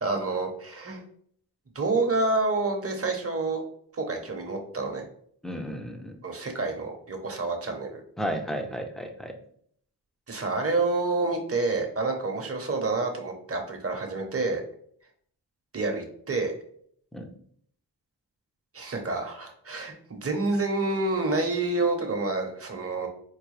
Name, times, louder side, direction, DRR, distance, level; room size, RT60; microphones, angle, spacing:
voice 1, 0.0-1.0 1.7-3.6 3.9-5.1 6.2-8.0 10.3-14.6 15.7-16.5 18.7-23.1, right 3 dB, 35° right, 3 dB, 0.9 m, -28 dB
voice 2, 5.4-6.2 8.2-9.3 17.1-17.3, equal, ahead, 4 dB, 0.6 m, -33 dB
4.6 x 2.2 x 3.2 m, 0.63 s
cardioid pair, 60°, 41 cm